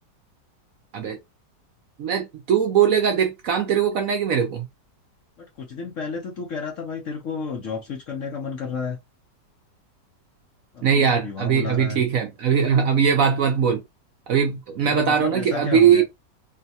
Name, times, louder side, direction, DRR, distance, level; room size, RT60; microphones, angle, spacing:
voice 1, 2.0-4.7 10.8-13.8 14.3-16.0, right 7 dB, 65° right, 0.8 m, -20 dB
voice 2, 5.4-9.0 10.7-12.0 14.9-16.0, left 5 dB, 65° left, 0.8 m, -32 dB
3.8 x 2.1 x 2.7 m
omnidirectional pair, 1.9 m